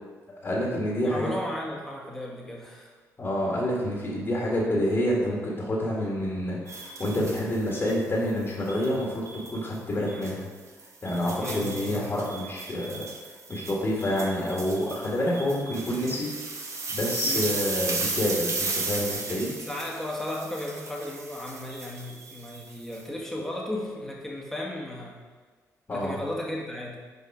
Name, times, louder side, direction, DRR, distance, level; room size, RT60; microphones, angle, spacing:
voice 1, 0.4-1.3 3.2-9.2 9.5-10.4 11.0-16.3 16.9-19.5 25.9-26.2, left 1 dB, 40° left, -4 dB, 2.0 m, -28 dB
voice 2, 1.0-2.9 10.0-10.3 11.4-12.1 17.2-17.5 19.6-25.2 25.9-27.0, left 1 dB, 5° left, -3 dB, 1.8 m, -35 dB
sound 1, 6.7-8.0 8.7-9.6 10.1-10.3 10.8-23.0, right 3 dB, 50° right, 1.1 m, -35 dB
6.7 x 4.9 x 4.9 m, 1.4 s
cardioid pair, 75°, 7 cm